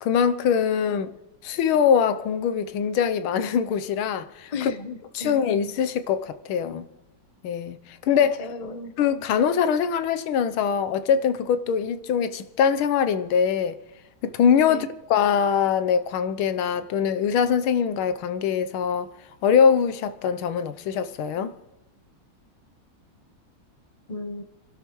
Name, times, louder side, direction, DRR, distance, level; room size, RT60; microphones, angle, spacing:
voice 1, 0.0-1.1 1.4-4.5 5.2-6.9 7.4-8.4 9.0-13.8 14.2-19.1 19.4-21.5, left 7 dB, 80° left, 1.6 m, -23 dB
voice 2, 4.5-5.4 8.4-8.9 14.7-14.9 24.1-24.4, left 3 dB, 40° left, 0.5 m, -34 dB
27.0 x 11.5 x 3.1 m
omnidirectional pair, 2.3 m